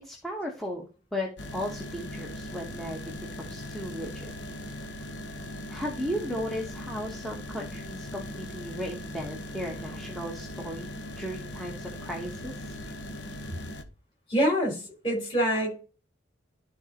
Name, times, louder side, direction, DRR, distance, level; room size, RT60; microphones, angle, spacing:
voice 1, 0.0-4.3 5.4-12.8, equal, ahead, -1 dB, 1.0 m, -36 dB
sound 1, 1.4-13.8, left 1 dB, 70° left, 1.1 m, -39 dB
voice 2, 14.3-15.8, equal, 30° left, -3 dB, 4.4 m, -26 dB
12.5 x 4.2 x 2.9 m, 0.36 s
head